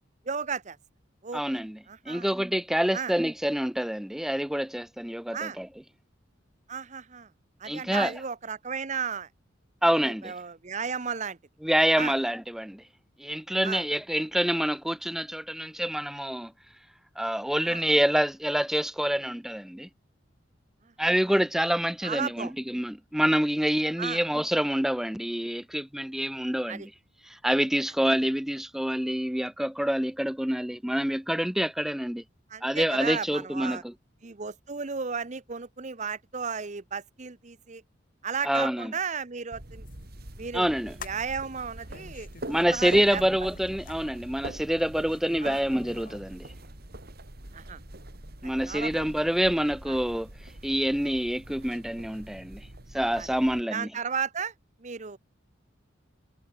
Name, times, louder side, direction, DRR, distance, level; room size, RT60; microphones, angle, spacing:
voice 1, 0.2-0.8 1.2-1.4 1.9-2.3 2.9-3.1 5.3-5.6 6.7-7.3 7.6-9.3 10.0-11.4 11.9-12.1 13.6-13.8 17.6-17.8 20.9-21.2 22.0-22.5 24.0-24.2 26.7-26.9 32.5-33.8 34.2-37.8 38.2-39.9 40.4-40.7 41.0-42.3 42.6-43.2 45.4-45.6 47.5-47.8 48.7-49.1 49.9-50.0 53.1-53.3 53.7-54.5 54.8-55.2, right 6 dB, 40° right, 0.9 m, -34 dB
voice 2, 1.3-1.8 2.1-5.7 7.6-8.1 9.8-10.3 11.6-12.8 13.2-16.5 17.2-19.9 21.0-26.9 27.3-32.2 32.6-33.9 38.4-38.9 40.5-40.9 42.5-46.5 48.4-50.3 50.6-52.7 52.9-53.9, equal, ahead, 0.5 m, -27 dB
sound 1, 39.5-53.6, right 1 dB, 55° right, 3.0 m, -44 dB
sound 2, 39.9-46.3, left 4 dB, 45° left, 6.4 m, -49 dB
head